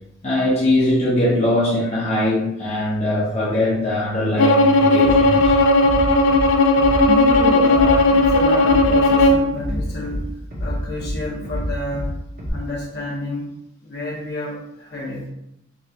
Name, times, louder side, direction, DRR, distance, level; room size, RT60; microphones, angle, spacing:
voice 1, 0.2-5.5, left 1 dB, 35° left, -7 dB, 0.8 m, -21 dB
Bowed string instrument, 4.4-9.5, left 2 dB, 85° left, 0.4 m, -15 dB
Bass drum, 5.0-5.5 5.8-6.4 6.8-7.4 7.7-8.3 8.6-9.2 9.6-10.2 10.5-11.1 11.4-12.1 12.4-12.5, equal, 50° right, 1.0 m, -27 dB
voice 2, 7.1-10.3 10.6-12.1 12.5-13.6 13.8-15.2, left 1 dB, 55° left, -3 dB, 1.1 m, -29 dB
4.6 x 2.5 x 2.8 m, 0.82 s
head